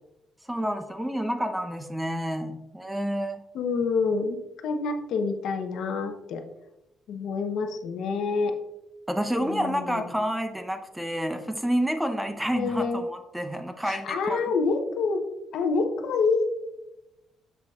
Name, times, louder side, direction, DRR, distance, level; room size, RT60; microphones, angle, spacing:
voice 1, 0.5-3.4 9.1-14.4, equal, 5° right, 7 dB, 0.7 m, -29 dB
voice 2, 3.5-6.4 7.1-8.5 9.4-10.0 12.5-13.0 13.8-15.2 15.5-16.5, left 4 dB, 75° left, 6 dB, 0.8 m, -27 dB
7.0 x 6.6 x 2.4 m, 0.94 s
cardioid pair, 90°, 0 cm